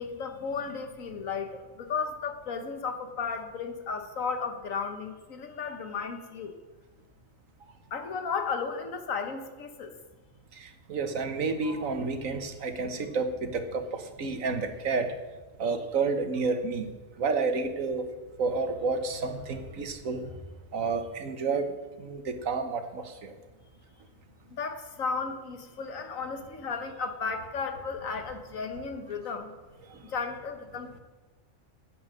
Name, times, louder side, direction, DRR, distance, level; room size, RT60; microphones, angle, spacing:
voice 1, 0.0-6.6 7.9-9.9 11.6-11.7 24.5-29.5 30.0-31.0, left 5 dB, 85° left, 7 dB, 1.6 m, -34 dB
voice 2, 10.9-15.1 15.6-16.9 17.2-18.0 18.4-20.2 20.7-21.7 22.0-23.3, right 4 dB, 85° right, 7 dB, 1.6 m, -30 dB
10.5 x 8.8 x 7.5 m, 1.2 s
omnidirectional pair, 1.4 m